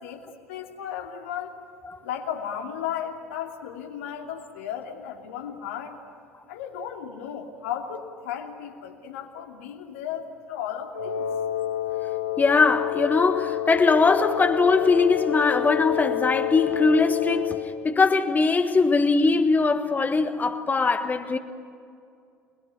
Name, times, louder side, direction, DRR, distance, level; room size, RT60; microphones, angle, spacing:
voice 1, 0.0-1.6 2.0-6.0 6.5-11.3, left 9 dB, 70° left, 2.8 m, -35 dB
Wind instrument woodwind instrument, 10.9-17.7, left 12 dB, 85° left, 2.0 m, -28 dB
voice 2, 12.4-17.6 17.8-21.4, left 4 dB, 25° left, 1.4 m, -21 dB
29.0 x 21.5 x 9.4 m
figure-of-eight pair, 65°, 7 cm